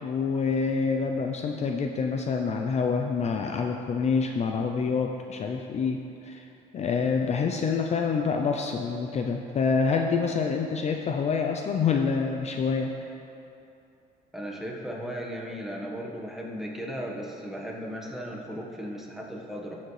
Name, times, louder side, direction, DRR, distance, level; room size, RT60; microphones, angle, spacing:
voice 1, 0.0-6.5 6.7-13.1, left 5 dB, 40° left, 3 dB, 0.5 m, -27 dB
voice 2, 14.3-19.8, equal, ahead, -3 dB, 1.4 m, -36 dB
14.0 x 7.2 x 3.3 m, 2.8 s
cardioid pair, 110°, 17 cm